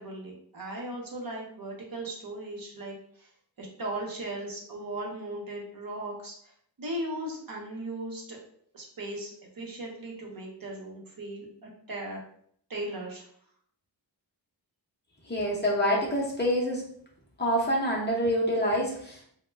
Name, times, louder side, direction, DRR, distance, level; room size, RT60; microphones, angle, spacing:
voice 1, 0.0-3.3 3.6-6.3 6.8-8.4 8.7-12.2 12.7-13.3, right 1 dB, 50° right, -1 dB, 0.7 m, -37 dB
voice 2, 15.3-16.8 17.4-19.2, equal, 25° left, -3 dB, 0.6 m, -26 dB
2.1 x 2.1 x 3.2 m, 0.63 s
wide cardioid pair, 90°, 44 cm